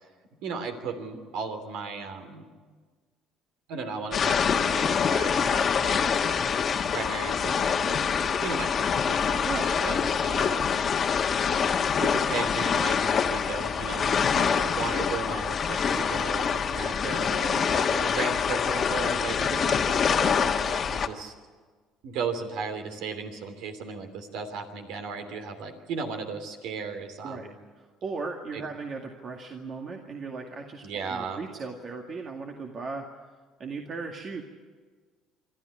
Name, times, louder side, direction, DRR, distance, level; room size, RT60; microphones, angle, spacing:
voice 1, 0.4-2.5 3.7-6.5 6.9-10.8 12.0-21.3 22.0-27.5 28.5-28.6 30.8-31.4, right 4 dB, 70° right, 7 dB, 3.0 m, -36 dB
sound 1, 4.1-21.1, left 6 dB, 45° left, 1.4 m, -25 dB
voice 2, 9.4-10.0 19.5-19.7 27.2-27.5 27.8-33.1 33.6-34.4, right 4 dB, 45° right, 2 dB, 2.1 m, -37 dB
25.0 x 13.5 x 9.9 m, 1.5 s
supercardioid pair, 70°, 0 cm